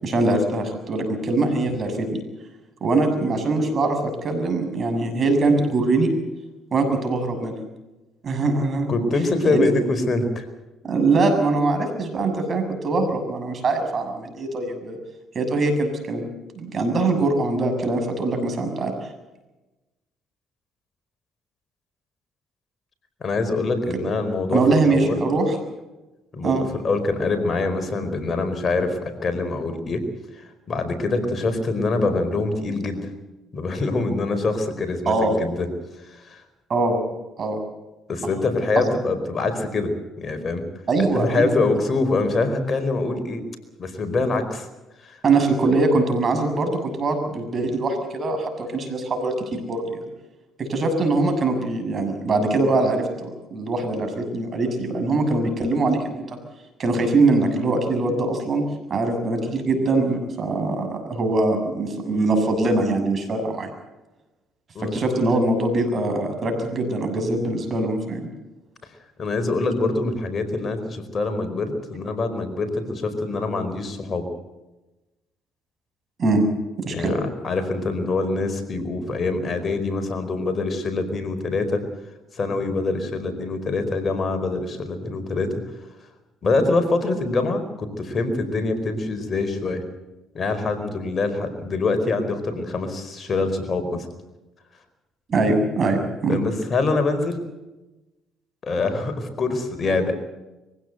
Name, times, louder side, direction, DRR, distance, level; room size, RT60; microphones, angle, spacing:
voice 1, 0.0-2.1 2.8-6.1 6.7-7.5 8.2-8.9 9.5-9.7 10.8-15.0 15.3-16.3 16.5-18.9 24.5-25.6 26.4-26.6 35.0-35.4 36.7-37.0 37.4-37.6 40.9-41.5 45.2-50.0 50.6-56.2 56.8-58.6 58.9-63.7 64.8-68.3 76.2-76.5 76.8-77.2 95.3-96.4, right 3 dB, 45° right, 6 dB, 6.9 m, -22 dB
voice 2, 8.9-10.5 23.2-24.6 24.9-25.2 26.3-30.0 30.7-33.1 33.5-35.7 36.0-36.4 38.1-39.9 40.2-40.6 41.1-43.4 43.8-44.7 45.0-45.2 64.7-65.2 69.2-74.2 76.9-81.8 82.3-85.5 86.4-89.8 90.3-94.1 96.3-97.4 98.6-100.1, left 3 dB, 40° left, 9 dB, 4.9 m, -24 dB
23.5 x 16.5 x 8.2 m, 1.0 s
supercardioid pair, 70°, 0 cm